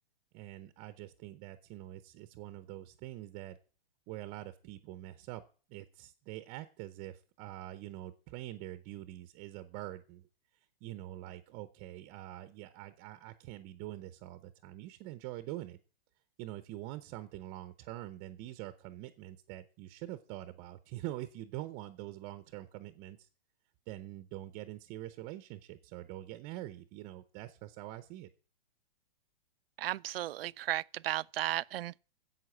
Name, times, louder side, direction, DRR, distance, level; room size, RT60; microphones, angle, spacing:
voice 1, 0.3-3.6 4.1-5.4 5.7-10.3 10.8-15.8 16.4-23.3 23.9-28.3, right 15 dB, 30° right, 0.7 m, -45 dB
voice 2, 29.8-32.0, right 14 dB, 75° right, 0.5 m, -35 dB
11.0 x 7.8 x 7.7 m
hypercardioid pair, 145°, 29 cm